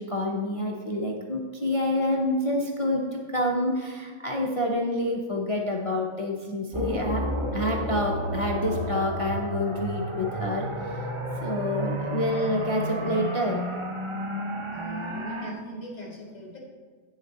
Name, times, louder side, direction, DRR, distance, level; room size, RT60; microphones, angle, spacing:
voice 1, 0.0-7.3 7.5-11.1 11.4-13.7, left 1 dB, 55° left, -1 dB, 0.3 m, -28 dB
sound 1, 6.7-15.5, right 1 dB, 40° right, 0.4 m, -31 dB
voice 2, 14.7-16.6, equal, 25° left, -4 dB, 1.9 m, -39 dB
8.9 x 6.9 x 4.0 m, 1.5 s
omnidirectional pair, 1.7 m